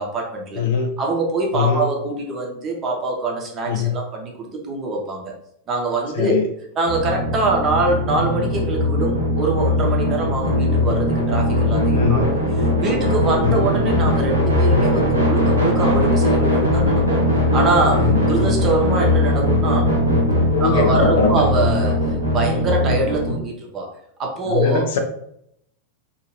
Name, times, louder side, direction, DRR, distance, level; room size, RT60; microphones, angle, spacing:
voice 1, 0.0-0.6 1.0-5.3 5.7-6.3 6.8-12.2 12.8-17.2 17.5-19.9 20.6-22.0 22.3-23.9 24.2-24.8, right 2 dB, 30° right, 0 dB, 0.8 m, -23 dB
voice 2, 0.6-1.0 1.5-1.9 3.7-4.0 6.1-6.4 11.9-12.3 13.4-13.6 18.0-18.2 20.5-21.4 24.5-25.0, left 6 dB, 55° left, 4 dB, 0.5 m, -21 dB
sound 1, 6.8-23.3, left 1 dB, 75° right, 0.8 m, -19 dB
2.7 x 2.6 x 3.0 m, 0.73 s
figure-of-eight pair, 90°, 0 cm